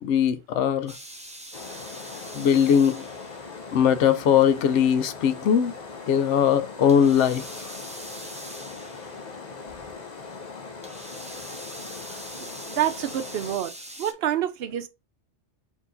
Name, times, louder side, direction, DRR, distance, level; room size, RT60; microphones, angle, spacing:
voice 1, 0.0-0.9 2.3-3.1 3.7-5.7 6.1-7.7, left 8 dB, 85° left, 0.9 m, -20 dB
sound 1, 0.9-3.7 6.9-9.3 10.8-14.1, right 1 dB, 10° right, 0.4 m, -42 dB
sound 2, 1.5-13.6, left 4 dB, 40° left, 0.8 m, -40 dB
voice 2, 12.4-13.7 14.0-14.9, right 11 dB, 65° right, 0.8 m, -27 dB
4.5 x 3.0 x 3.9 m
omnidirectional pair, 1.2 m